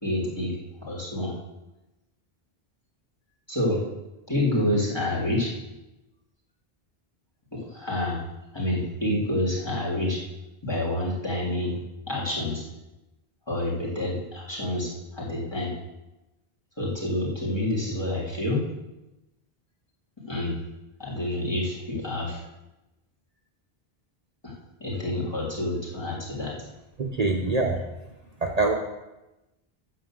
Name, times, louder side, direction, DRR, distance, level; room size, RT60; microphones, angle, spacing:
voice 1, 0.0-0.5 0.8-1.3 3.5-3.8 4.3-5.5 7.5-8.2 8.5-10.2 10.6-11.7 12.1-12.6 13.5-15.7 16.8-18.6 20.3-20.6 21.0-22.4 24.4-24.5 24.8-26.6, left 1 dB, 25° left, -6 dB, 3.2 m, -28 dB
voice 2, 27.0-27.8 28.4-28.7, right 3 dB, 40° right, 2 dB, 0.9 m, -24 dB
9.1 x 6.7 x 7.6 m, 0.99 s
omnidirectional pair, 1.0 m